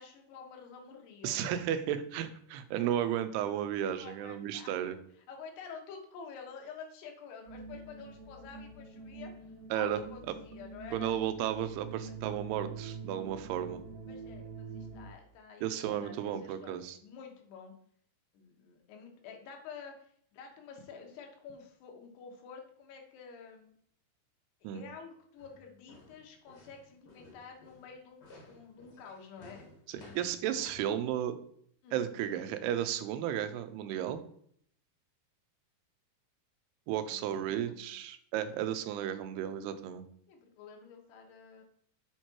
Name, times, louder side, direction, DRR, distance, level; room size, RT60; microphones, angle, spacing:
voice 1, 0.0-1.4 4.0-5.0 5.3-11.1 12.0-12.1 14.1-17.7 18.3-23.7 24.7-30.3 31.8-32.1 37.0-38.0 40.3-41.6, left 5 dB, 85° left, 2 dB, 3.3 m, -50 dB
voice 2, 1.2-5.0 9.7-10.0 10.9-13.8 15.6-17.0 24.6-24.8 29.9-31.4 31.9-34.2 36.9-40.0, right 10 dB, 85° right, 10 dB, 2.7 m, -33 dB
sound 1, 7.5-15.1, right 4 dB, 65° right, 1.6 m, -45 dB
sound 2, 25.4-30.9, left 3 dB, 50° left, 1.2 m, -56 dB
7.4 x 4.5 x 4.5 m, 0.63 s
omnidirectional pair, 4.6 m